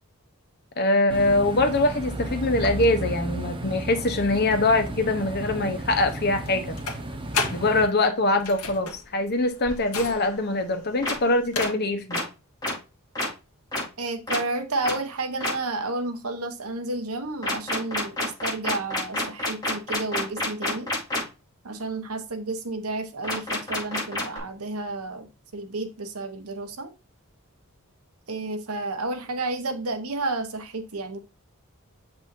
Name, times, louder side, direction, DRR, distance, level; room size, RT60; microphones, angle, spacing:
voice 1, 0.8-6.8 7.5-12.2, left 2 dB, 45° left, 1.1 m, -23 dB
sound 1, 1.1-7.9, right 1 dB, 25° right, 1.0 m, -33 dB
sound 2, 1.5-11.7, left 4 dB, 85° left, 1.5 m, -37 dB
sound 3, 11.0-11.1 11.6-11.7 12.1-12.2 12.6-12.7 13.2-13.3 13.7-13.8 14.3-14.4 14.8-14.9 15.4-15.5 17.4-21.2 23.2-24.4, left 2 dB, 20° left, 3.9 m, -27 dB
voice 2, 14.0-20.9 21.6-26.9 28.3-31.2, right 2 dB, 80° right, 1.1 m, -31 dB
7.3 x 5.5 x 2.7 m
head